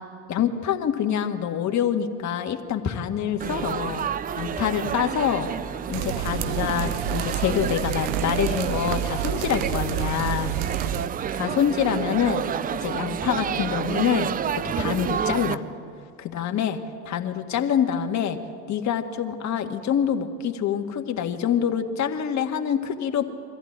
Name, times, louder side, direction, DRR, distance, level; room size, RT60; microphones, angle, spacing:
voice 1, 0.3-4.1 4.4-5.5 5.9-10.5 11.3-12.4 12.8-14.3 14.6-15.6 16.2-16.8 17.1-18.4 18.7-23.3, left 9 dB, 35° left, 5 dB, 1.9 m, -26 dB
Laughter / Chatter / Crowd, 3.4-15.5, right 8 dB, 20° right, 0.5 m, -30 dB
sound 1, 5.9-11.1, right 10 dB, 60° right, 1.3 m, -29 dB
23.0 x 15.0 x 9.9 m, 2.3 s
hypercardioid pair, 80°, 47 cm